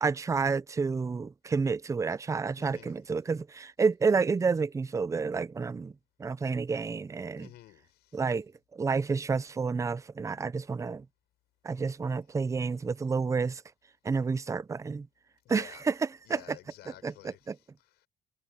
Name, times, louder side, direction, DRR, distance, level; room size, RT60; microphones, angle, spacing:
voice 1, 0.0-5.9 6.2-7.5 8.1-11.0 11.6-13.6 14.0-15.1 15.5-16.6 16.9-17.6, right 5 dB, 20° right, 0.5 m, -30 dB
voice 2, 2.6-3.0 7.4-8.2 15.4-15.8 16.3-18.1, left 15 dB, 80° left, 7.3 m, -52 dB
cardioid pair, 110°, 17 cm